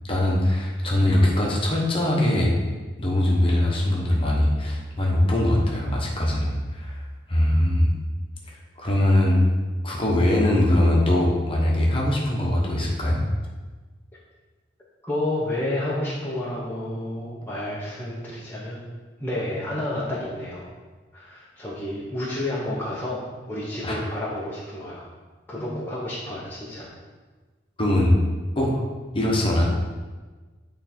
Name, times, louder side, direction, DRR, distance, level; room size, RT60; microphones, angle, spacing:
voice 1, 0.1-2.6 3.0-7.0 7.3-7.9 8.5-9.4 9.8-13.2 23.8-24.0 25.6-25.7 27.8-28.2 28.5-28.8 29.1-29.6, left 1 dB, 30° left, -2 dB, 1.1 m, -21 dB
voice 2, 15.0-18.9 19.2-20.6 21.1-25.1 25.5-26.9, left 1 dB, 10° left, -7 dB, 0.8 m, -30 dB
8.7 x 3.4 x 4.3 m, 1.3 s
head